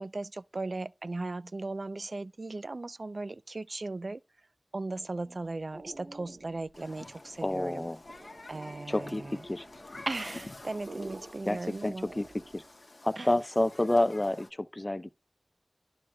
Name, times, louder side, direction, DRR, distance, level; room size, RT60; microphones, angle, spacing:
voice 1, 0.0-4.2 4.7-7.9 8.5-9.4 10.1-12.1 13.2-13.3, right 2 dB, 65° right, 0.4 m, -37 dB
sound 1, 5.0-12.8, right 2 dB, 80° right, 1.9 m, -50 dB
Human group actions, 6.7-14.5, left 2 dB, 50° left, 1.6 m, -48 dB
voice 2, 7.4-8.0 8.9-9.6 11.4-12.6 13.0-15.1, left 1 dB, 30° left, 0.7 m, -29 dB
12.0 x 4.8 x 2.2 m
wide cardioid pair, 55°, 0 cm